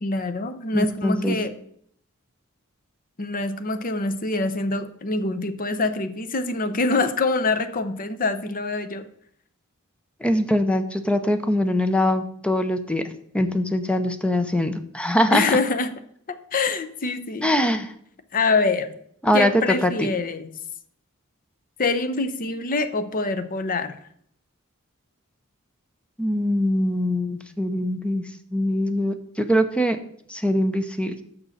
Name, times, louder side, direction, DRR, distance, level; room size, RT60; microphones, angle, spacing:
voice 1, 0.0-1.5 3.2-9.0 15.3-15.9 16.3-17.5 18.3-18.9 19.3-20.5 21.8-24.0, left 3 dB, 40° left, 10 dB, 0.7 m, -25 dB
voice 2, 0.7-1.4 10.2-13.0 13.3-15.4 17.4-17.9 19.2-20.1 26.2-28.2 28.5-30.0 30.3-31.2, equal, 5° left, 8 dB, 0.6 m, -22 dB
6.5 x 6.1 x 6.5 m, 0.66 s
head